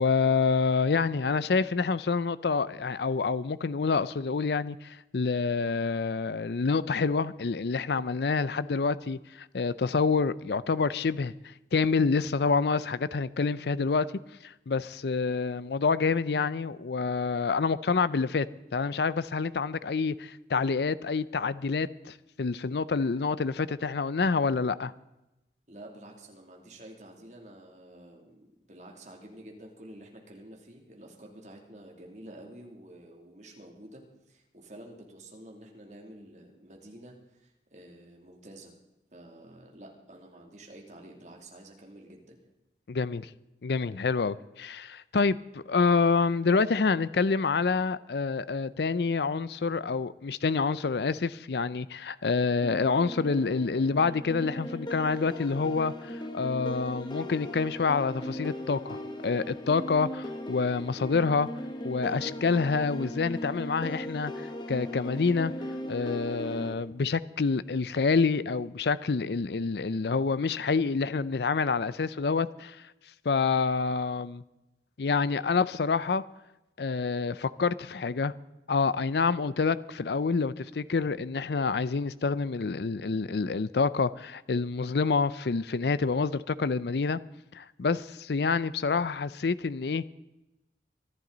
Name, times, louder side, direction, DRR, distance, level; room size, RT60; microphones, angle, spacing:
voice 1, 0.0-9.2 9.5-11.3 11.7-14.1 14.4-18.5 18.7-24.9 42.9-43.3 43.6-61.5 61.8-65.5 65.9-72.8 73.3-74.4 75.0-76.2 76.8-78.3 78.7-87.2 87.5-90.0, left 4 dB, 75° left, 0.5 m, -27 dB
voice 2, 25.7-38.7 39.1-42.5, right 1 dB, 40° right, 2.7 m, -49 dB
sound 1, 52.6-66.7, equal, 25° left, 1.4 m, -38 dB
24.0 x 11.5 x 4.0 m
head